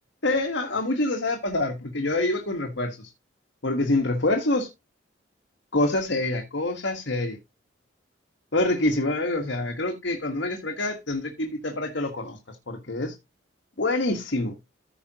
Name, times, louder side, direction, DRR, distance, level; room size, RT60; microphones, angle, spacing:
voice 1, 0.2-3.1 3.6-4.7 5.7-7.4 8.5-13.1 13.8-14.5, left 2 dB, 75° left, 1.5 m, -26 dB
15.0 x 5.1 x 2.9 m
head